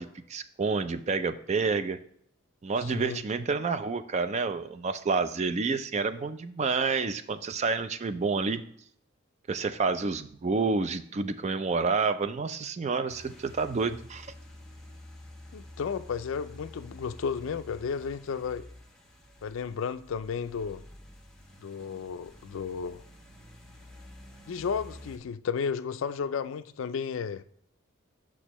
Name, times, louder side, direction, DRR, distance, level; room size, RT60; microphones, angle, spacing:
voice 1, 0.0-2.0 2.6-8.6 9.5-14.3, right 4 dB, 30° right, 0.4 m, -29 dB
voice 2, 2.8-3.2 15.5-18.7 19.4-20.8 21.6-23.0 24.5-27.4, left 6 dB, 65° left, 0.4 m, -33 dB
sound 1, 13.1-25.2, left 1 dB, 5° left, 1.2 m, -49 dB
6.3 x 5.9 x 3.0 m
head